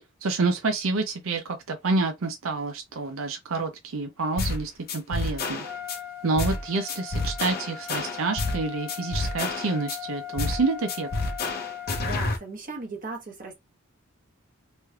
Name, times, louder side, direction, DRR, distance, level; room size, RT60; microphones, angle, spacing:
voice 1, 0.2-5.6 6.2-11.1, right 3 dB, 85° right, 0.6 m, -28 dB
sound 1, 4.4-4.6 4.9-6.0 6.4-6.6 6.9-8.6 8.9-10.0 10.4-10.6 10.9-12.4, left 3 dB, 50° left, 0.8 m, -29 dB
Trumpet, 5.6-12.2, left 9 dB, 5° right, 0.7 m, -39 dB
voice 2, 12.0-13.5, right 2 dB, 40° right, 1.2 m, -37 dB
3.1 x 3.1 x 2.3 m
head